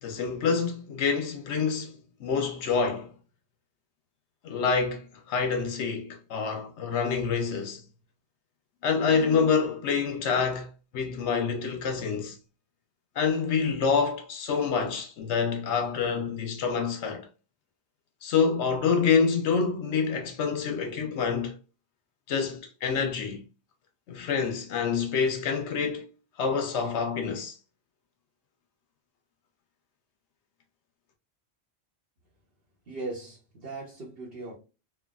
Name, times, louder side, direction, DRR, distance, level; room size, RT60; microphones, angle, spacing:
voice 1, 0.0-3.1 4.4-7.8 8.8-10.7 10.9-12.4 13.2-17.3 18.2-21.5 22.3-23.4 24.1-26.1 26.4-27.5, left 5 dB, 80° left, 1.0 m, -27 dB
voice 2, 32.9-34.5, right 2 dB, 60° right, 1.2 m, -38 dB
3.3 x 2.2 x 2.2 m
omnidirectional pair, 1.1 m